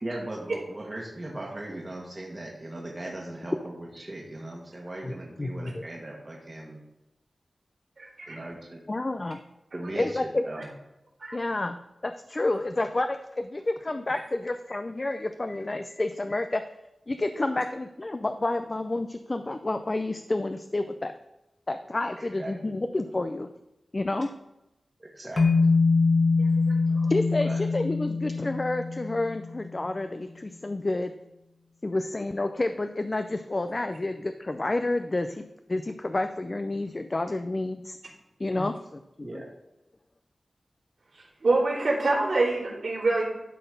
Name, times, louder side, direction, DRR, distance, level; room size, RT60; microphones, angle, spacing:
voice 1, 0.0-6.8 8.3-8.8 9.7-10.7 22.2-22.7 25.0-25.4 27.4-27.6 39.2-39.4, right 1 dB, 30° right, -2 dB, 1.6 m, -38 dB
voice 2, 5.4-5.8 8.9-9.4 10.0-10.4 11.3-11.8 12.0-16.6 17.1-21.1 21.7-23.5 23.9-24.3 27.1-31.1 31.8-38.0 38.4-39.4, left 2 dB, 35° left, 8 dB, 0.4 m, -29 dB
voice 3, 8.0-8.5 11.2-11.3 26.7-27.1 41.4-43.3, right 2 dB, 70° right, -10 dB, 3.4 m, -26 dB
sound 1, 25.4-29.7, left 4 dB, 50° left, 0.8 m, -24 dB
11.5 x 4.1 x 5.3 m, 0.92 s
wide cardioid pair, 95°, 0 cm